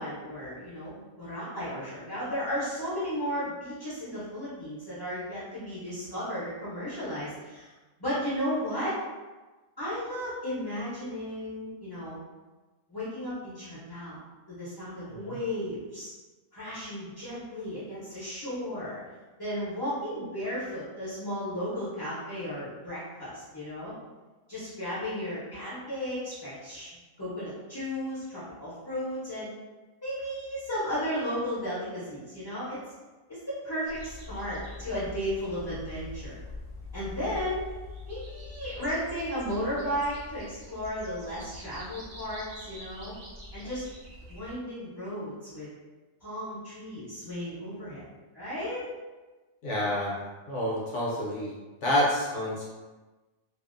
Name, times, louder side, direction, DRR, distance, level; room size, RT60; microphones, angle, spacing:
voice 1, 0.0-7.7 8.0-9.0 9.8-12.2 12.9-14.2 14.5-16.1 16.5-19.0 19.4-23.9 24.5-26.9 27.2-29.5 30.0-32.8 33.3-36.4 36.9-37.7 38.1-43.2 43.5-43.8 44.3-45.7 46.2-48.1 48.3-48.8, equal, 30° left, -11 dB, 0.4 m, -34 dB
sound 1, 33.9-44.5, left 2 dB, 65° right, 0.5 m, -44 dB
voice 2, 49.6-50.2 50.5-51.5 51.8-52.8, left 1 dB, 65° left, -5 dB, 0.9 m, -28 dB
2.6 x 2.0 x 2.4 m, 1.2 s
omnidirectional pair, 1.5 m